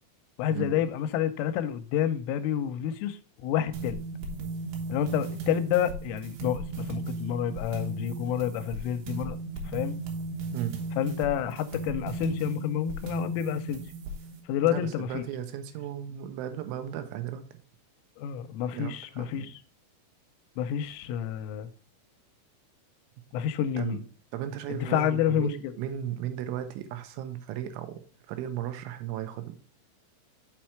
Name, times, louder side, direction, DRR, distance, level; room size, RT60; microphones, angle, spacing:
voice 1, 0.4-4.0 4.9-9.4 9.7-10.0 11.0-13.8 14.5-15.2 18.2-19.6 20.6-21.7 23.3-24.0 24.7-25.7, left 10 dB, 90° left, 3.1 m, -29 dB
sound 1, 3.7-14.4, right 3 dB, 65° right, 2.8 m, -36 dB
voice 2, 14.6-17.4 18.7-19.5 23.8-24.0 24.3-28.0 28.3-29.7, right 11 dB, 85° right, 3.2 m, -35 dB
7.5 x 4.4 x 4.5 m
omnidirectional pair, 5.6 m